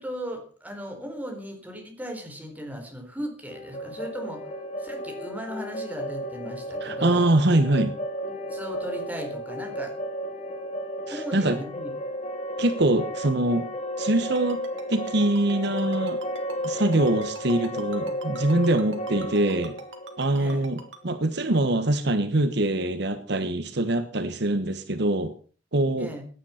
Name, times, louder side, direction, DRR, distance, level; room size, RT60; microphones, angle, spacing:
voice 1, 0.0-4.5 4.8-7.2 8.5-9.9 11.1-11.9 20.4-20.7 26.0-26.2, equal, 10° right, 3 dB, 4.1 m, -37 dB
sound 1, 3.5-21.3, equal, 35° left, 2.3 m, -33 dB
voice 2, 6.8-7.9 11.1-11.6 12.6-13.7 14.0-14.6 14.9-16.2 16.6-19.8 20.2-25.3 25.7-26.1, right 1 dB, 60° right, 10 dB, 1.2 m, -24 dB
Ringtone, 14.2-21.0, right 4 dB, 80° right, 2.7 m, -43 dB
17.0 x 10.5 x 5.8 m, 0.41 s
head